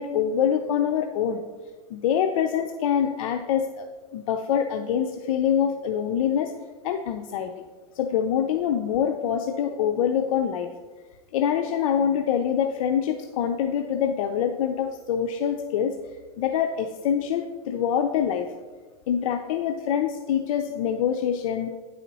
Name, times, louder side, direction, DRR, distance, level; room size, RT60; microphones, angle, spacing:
voice 1, 0.0-1.4 1.9-3.9 4.1-6.5 6.8-7.5 8.0-10.7 11.3-15.9 16.4-18.5 19.1-21.7, left 8 dB, 80° left, 5 dB, 0.5 m, -25 dB
9.2 x 4.2 x 4.0 m, 1.4 s
supercardioid pair, 130°, 18 cm